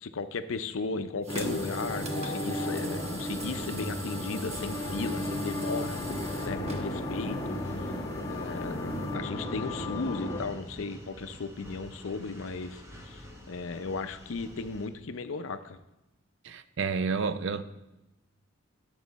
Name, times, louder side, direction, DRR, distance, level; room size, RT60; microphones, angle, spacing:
voice 1, 0.0-6.0 6.4-7.6 8.2-15.8, left 4 dB, 75° left, 0.6 m, -36 dB
sound 1, 1.2-9.1, right 2 dB, 30° right, 1.1 m, -42 dB
sound 2, 1.3-10.4, left 1 dB, 20° left, 1.7 m, -34 dB
sound 3, 2.5-14.9, equal, 15° right, 1.1 m, -48 dB
voice 2, 16.4-17.6, right 5 dB, 65° right, 0.5 m, -30 dB
11.0 x 7.0 x 4.1 m
head